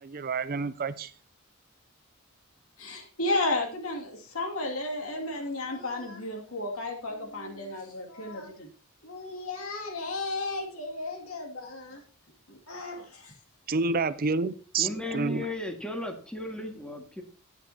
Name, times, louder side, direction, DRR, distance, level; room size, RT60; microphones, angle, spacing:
voice 1, 0.0-1.1 13.7-15.5, right 4 dB, 45° right, 0.5 m, -29 dB
voice 2, 2.8-8.7 9.0-12.0 12.5-13.3, left 2 dB, 80° left, 2.5 m, -33 dB
voice 3, 14.8-17.2, left 2 dB, 5° left, 1.9 m, -35 dB
13.0 x 9.8 x 2.9 m
head